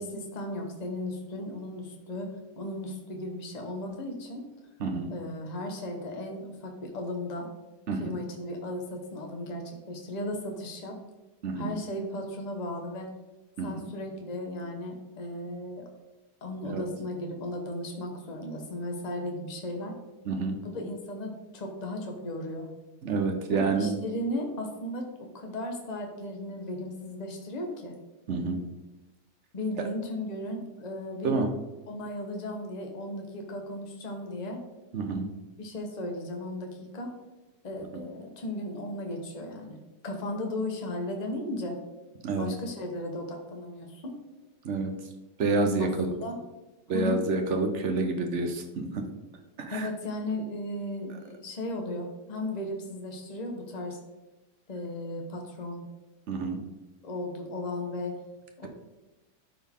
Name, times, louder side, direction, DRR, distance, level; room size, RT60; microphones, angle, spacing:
voice 1, 0.0-4.5 5.1-7.5 8.0-11.0 11.6-13.1 13.6-15.8 16.4-20.0 20.6-22.7 23.5-25.1 25.3-27.9 29.5-31.4 31.9-34.6 35.6-37.1 37.6-39.8 40.0-41.8 42.4-44.2 45.8-46.4 46.9-47.2 49.7-54.0 54.7-55.8 57.0-58.2 58.6-58.7, left 1 dB, 25° left, 2 dB, 1.1 m, -36 dB
voice 2, 7.9-8.2 11.4-11.7 13.6-13.8 16.6-16.8 20.2-20.6 23.0-23.9 28.3-28.6 31.2-31.5 34.9-35.3 37.9-38.0 42.2-42.5 44.6-45.1 45.4-46.1 46.9-49.1 49.6-49.9 56.3-56.6, right 3 dB, 50° right, 4 dB, 1.1 m, -28 dB
12.5 x 4.4 x 3.6 m, 1.1 s
omnidirectional pair, 1.8 m